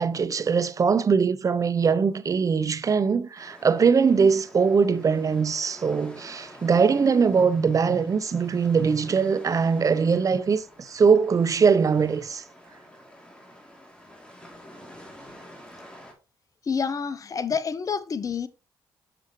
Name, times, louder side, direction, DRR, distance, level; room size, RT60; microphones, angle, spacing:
voice 1, 0.0-12.4, right 5 dB, 40° right, 0.6 m, -22 dB
sound 1, 3.4-16.1, equal, 10° left, 2.9 m, -48 dB
voice 2, 16.6-18.5, left 6 dB, 40° left, 0.8 m, -28 dB
7.6 x 6.3 x 3.1 m
supercardioid pair, 60°, 9 cm